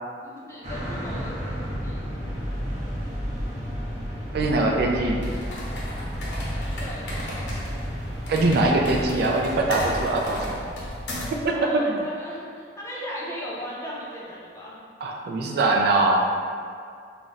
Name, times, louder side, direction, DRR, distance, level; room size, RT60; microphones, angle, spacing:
voice 1, 0.2-2.1 6.8-7.1 11.4-14.8, equal, 15° left, -6 dB, 0.5 m, -37 dB
sound 1, 0.6-10.1, equal, 45° right, 0.8 m, -32 dB
voice 2, 4.3-5.3 8.3-10.6 11.4-12.0 15.0-16.2, right 2 dB, 60° right, 0 dB, 0.3 m, -22 dB
sound 2, 5.1-11.5, left 1 dB, 80° left, 0.6 m, -34 dB
2.4 x 2.1 x 3.9 m, 2.3 s
head